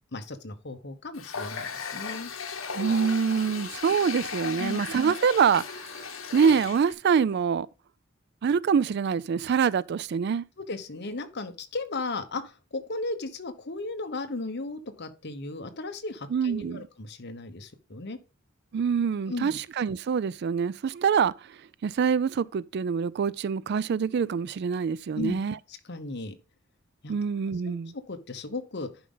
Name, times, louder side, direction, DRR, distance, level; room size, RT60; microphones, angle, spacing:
voice 1, 0.1-2.3 4.6-4.8 10.6-18.2 19.3-19.6 25.1-25.4 25.7-26.4 27.0-27.1 27.6-28.9, left 2 dB, 55° left, 1.1 m, -36 dB
Water tap faucet, 1.1-6.9, left 5 dB, 75° left, 1.2 m, -36 dB
voice 2, 2.7-7.7 8.4-10.4 16.3-16.9 18.7-21.3 21.8-25.5 27.1-27.9, right 6 dB, 55° right, 0.3 m, -25 dB
11.0 x 5.2 x 3.8 m
head